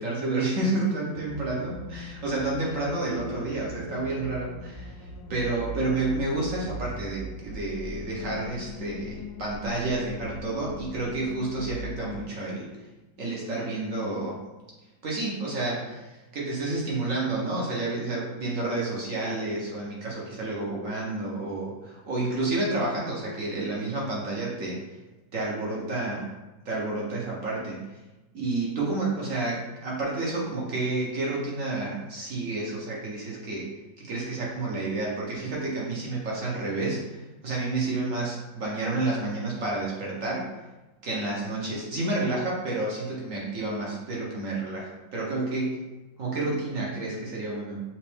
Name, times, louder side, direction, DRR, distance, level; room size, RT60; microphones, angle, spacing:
voice 1, 0.0-12.7 13.2-14.4 15.0-24.8 25.3-26.3 26.6-27.8 28.3-40.5 41.0-45.8 46.2-47.8, right 2 dB, 50° right, -4 dB, 1.1 m, -30 dB
sound 1, 1.1-12.0, left 2 dB, 70° left, 1.1 m, -40 dB
5.9 x 2.5 x 3.4 m, 1.1 s
omnidirectional pair, 2.1 m